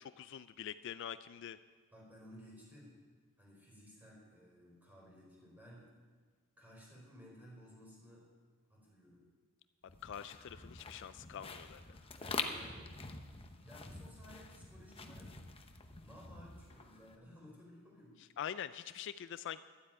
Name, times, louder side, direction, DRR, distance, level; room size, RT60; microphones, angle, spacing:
voice 1, 0.2-1.6 10.0-11.8 18.4-19.6, left 9 dB, 60° left, 13 dB, 0.3 m, -44 dB
voice 2, 1.9-2.9 3.4-5.9 6.6-8.2 8.7-9.2 12.2-12.9 13.6-15.3 16.0-18.2, equal, 10° right, -4 dB, 4.6 m, -57 dB
sound 1, 9.9-17.2, left 4 dB, 25° left, 0.8 m, -46 dB
12.0 x 8.3 x 8.8 m, 1.5 s
head